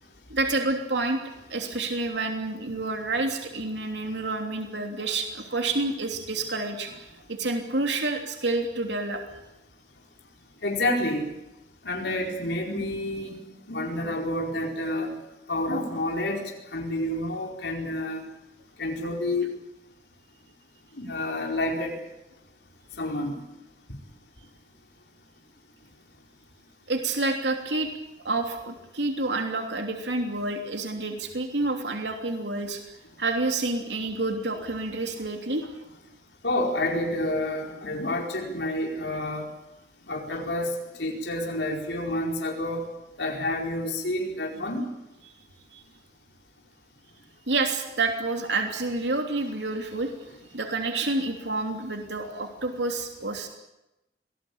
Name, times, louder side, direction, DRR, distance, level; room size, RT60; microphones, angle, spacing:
voice 1, 0.3-1.2 1.5-9.2 26.9-27.9 28.2-32.8 33.2-35.7 45.7-45.8 47.5-50.1 50.5-53.5, right 2 dB, 85° right, 4 dB, 3.1 m, -28 dB
voice 2, 10.6-11.3 11.8-13.4 13.7-15.1 15.5-18.2 18.8-19.5 20.9-22.0 23.0-23.4 36.4-39.5 40.1-42.9 43.2-44.9, left 1 dB, 85° left, 0 dB, 4.8 m, -29 dB
25.5 x 20.0 x 8.8 m, 0.93 s
head